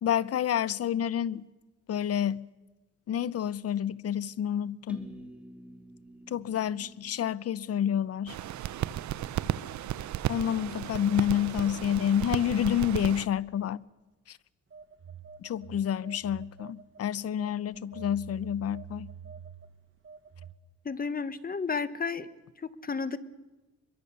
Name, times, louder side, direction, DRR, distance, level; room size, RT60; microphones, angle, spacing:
voice 1, 0.0-1.5 1.9-2.5 3.1-5.1 6.3-8.4 10.3-13.8 14.3-14.4 15.4-19.1, left 9 dB, 55° left, 0.8 m, -29 dB
sound 1, 4.9-8.8, right 1 dB, 5° right, 2.8 m, -49 dB
sound 2, 8.3-13.3, right 12 dB, 70° right, 0.8 m, -34 dB
Telephone, 14.7-17.0 17.4-20.5, right 7 dB, 40° right, 1.8 m, -47 dB
voice 2, 20.8-22.3 22.6-23.2, left 5 dB, 30° left, 1.3 m, -32 dB
24.5 x 22.5 x 6.9 m
cardioid pair, 90°, 30 cm